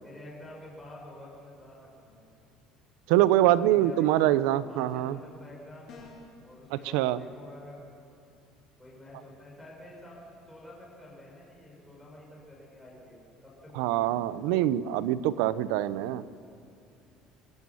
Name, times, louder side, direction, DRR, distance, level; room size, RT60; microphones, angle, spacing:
voice 1, 0.0-2.3 3.3-4.4 4.7-7.8 8.8-14.2, left 1 dB, 5° left, -4 dB, 6.2 m, -48 dB
voice 2, 3.1-5.2 6.7-7.2 13.7-16.2, right 13 dB, 85° right, 16 dB, 0.7 m, -24 dB
sound 1, 5.9-6.4, left 4 dB, 45° left, 4.8 m, -48 dB
26.5 x 15.0 x 7.2 m, 2.5 s
cardioid pair, 175°, 0 cm